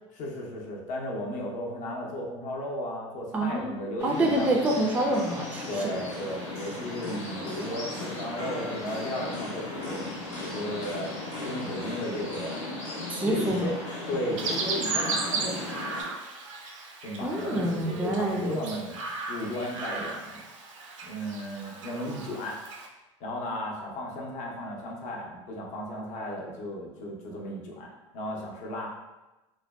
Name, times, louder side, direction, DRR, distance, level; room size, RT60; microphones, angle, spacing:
voice 1, 0.1-4.5 5.7-10.0 10.4-11.1 11.4-12.6 13.2-13.7 14.1-15.8 17.0-20.4 21.0-22.6 23.2-28.9, equal, 50° left, -2 dB, 0.6 m, -35 dB
voice 2, 3.3-3.7 4.0-5.7 13.1-13.7 17.2-18.6, right 1 dB, 10° right, 1 dB, 0.3 m, -27 dB
sound 1, 4.0-16.0, left 2 dB, 90° left, 1.0 m, -36 dB
Chirp tweet, 14.4-22.9, right 4 dB, 90° right, 0.4 m, -35 dB
2.5 x 2.2 x 2.2 m, 1.0 s
hypercardioid pair, 90°, 16 cm